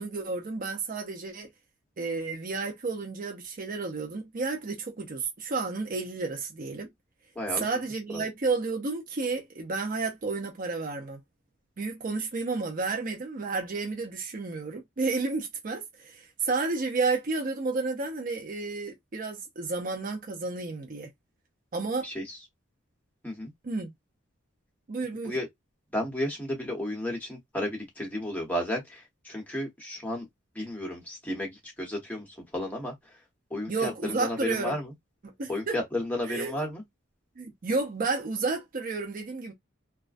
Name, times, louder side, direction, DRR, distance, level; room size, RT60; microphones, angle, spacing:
voice 1, 0.0-1.5 2.0-6.9 7.6-11.2 11.8-21.1 21.7-22.1 23.6-23.9 24.9-25.4 33.7-34.7 35.2-35.8 36.2-36.5 37.4-39.5, right 3 dB, 40° right, 0.5 m, -31 dB
voice 2, 7.3-7.7 8.1-8.3 22.0-22.4 23.2-23.5 25.2-25.5 25.9-30.3 30.5-32.3 32.5-32.9 33.5-34.9 35.5-36.8, left 1 dB, 10° left, 0.9 m, -33 dB
2.4 x 2.1 x 2.4 m
head